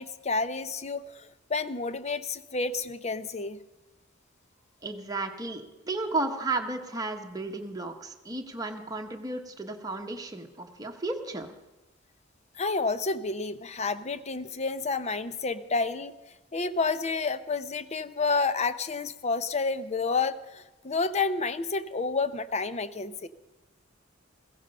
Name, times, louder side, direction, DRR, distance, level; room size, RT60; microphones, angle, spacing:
voice 1, 0.0-3.6 12.6-16.1 16.5-23.3, left 4 dB, 35° left, 13 dB, 0.7 m, -30 dB
voice 2, 4.8-11.5, right 2 dB, 20° right, 3 dB, 1.2 m, -33 dB
15.5 x 15.5 x 5.4 m, 1.0 s
head